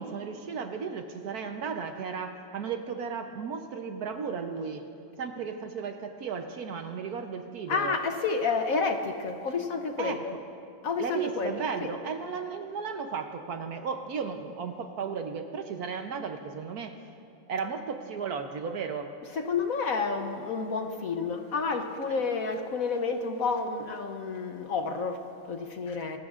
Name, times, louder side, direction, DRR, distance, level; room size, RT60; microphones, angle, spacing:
voice 1, 0.0-4.9 5.2-8.0 10.0-10.2 11.0-17.0 17.5-19.1 22.1-22.2, right 6 dB, 65° right, 6 dB, 1.2 m, -35 dB
voice 2, 7.7-10.3 10.8-11.9 19.3-26.2, left 4 dB, 60° left, 5 dB, 1.1 m, -30 dB
25.0 x 20.0 x 2.5 m, 2.5 s
omnidirectional pair, 2.0 m